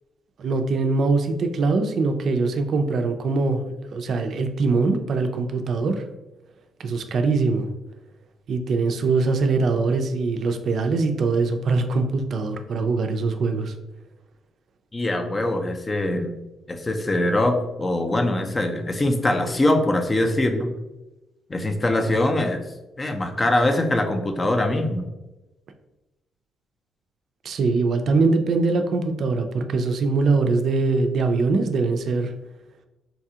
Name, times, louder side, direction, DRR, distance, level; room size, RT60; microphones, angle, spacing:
voice 1, 0.4-3.6 3.9-6.0 6.8-7.7 8.5-13.7 27.4-32.3, right 3 dB, 60° right, 7 dB, 0.4 m, -22 dB
voice 2, 14.9-16.3 16.7-20.7 21.5-22.6 23.0-25.1, left 1 dB, 25° left, 6 dB, 0.5 m, -22 dB
4.0 x 2.3 x 2.7 m, 1.0 s
cardioid pair, 90°, 0 cm